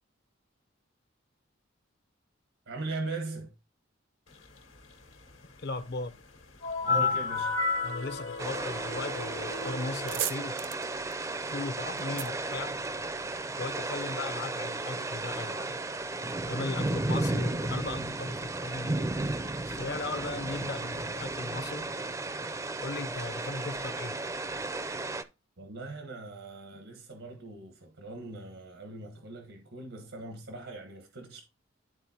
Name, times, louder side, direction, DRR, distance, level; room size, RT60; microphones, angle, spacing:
voice 1, 2.7-3.5 6.8-7.6 25.6-31.4, right 3 dB, 85° right, 1.2 m, -40 dB
voice 2, 5.6-6.2 6.9-7.1 7.8-10.6 11.5-12.8 13.6-15.8 16.4-19.0 19.7-21.9 22.8-24.2, left 3 dB, 60° left, 0.7 m, -37 dB
sound 1, 6.6-10.2, left 4 dB, 80° left, 1.5 m, -31 dB
sound 2, 8.4-25.2, right 2 dB, 15° right, 0.4 m, -34 dB
sound 3, 9.9-13.4, right 11 dB, 70° right, 0.6 m, -38 dB
12.0 x 4.1 x 2.8 m
head